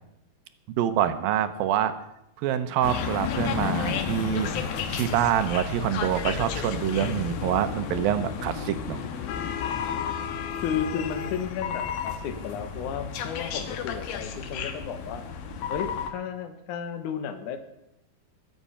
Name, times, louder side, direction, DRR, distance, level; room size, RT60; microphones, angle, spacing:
voice 1, 0.7-1.9 2.4-9.0, right 10 dB, 80° right, 10 dB, 2.6 m, -26 dB
sound 1, 2.8-16.1, left 7 dB, 80° left, 3.1 m, -32 dB
voice 2, 10.6-15.2 15.7-17.6, left 7 dB, 65° left, 8 dB, 2.5 m, -33 dB
21.5 x 8.3 x 5.6 m, 0.83 s
omnidirectional pair, 4.1 m